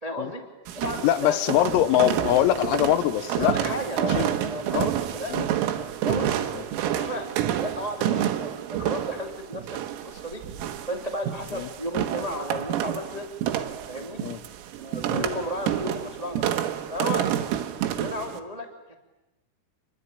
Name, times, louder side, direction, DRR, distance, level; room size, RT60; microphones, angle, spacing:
voice 1, 0.0-0.4 0.7-1.4 3.3-5.4 5.8-9.7 10.0-10.4 10.9-13.3 13.9-14.2 14.8-16.6 16.9-17.4 17.9-18.9, left 1 dB, 30° right, 3 dB, 0.7 m, -34 dB
sound 1, 0.7-18.4, right 11 dB, 85° right, 4.1 m, -29 dB
voice 2, 1.0-3.5 4.2-4.3 4.7-4.9 5.3-5.5 6.1-6.7 11.5-11.7 14.2-14.4 15.1-15.3, left 13 dB, 85° left, 13 dB, 3.9 m, -23 dB
28.0 x 22.5 x 9.1 m, 1.0 s
omnidirectional pair, 5.9 m